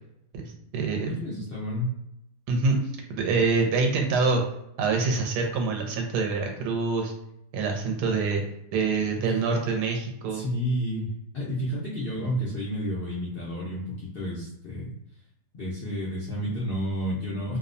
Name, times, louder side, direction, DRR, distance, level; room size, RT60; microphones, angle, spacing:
voice 1, 0.3-1.2 2.5-2.8 3.1-4.4 4.8-7.1 7.5-8.4 8.7-10.4, right 4 dB, 90° right, 2 dB, 1.2 m, -25 dB
voice 2, 1.0-2.0 9.1-9.4 10.3-14.9 15.5-17.6, equal, 85° left, -6 dB, 0.5 m, -31 dB
2.8 x 2.0 x 2.4 m, 0.81 s
omnidirectional pair, 1.7 m